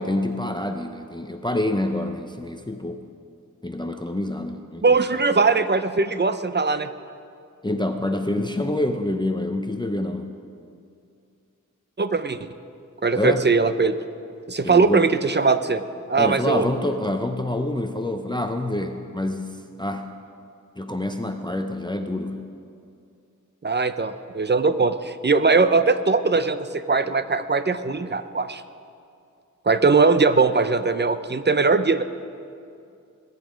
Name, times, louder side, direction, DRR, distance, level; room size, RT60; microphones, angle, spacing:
voice 1, 0.0-3.0 3.6-5.2 7.6-10.3 13.2-13.5 14.6-15.1 16.2-20.1 20.8-22.5, left 1 dB, 15° left, 5 dB, 0.7 m, -27 dB
voice 2, 4.8-6.9 12.0-12.4 13.0-14.0 14.5-15.8 16.1-16.6 23.6-28.6 29.7-32.0, right 4 dB, 35° right, 11 dB, 0.7 m, -20 dB
21.0 x 9.4 x 5.2 m, 2.5 s
wide cardioid pair, 60°, 32 cm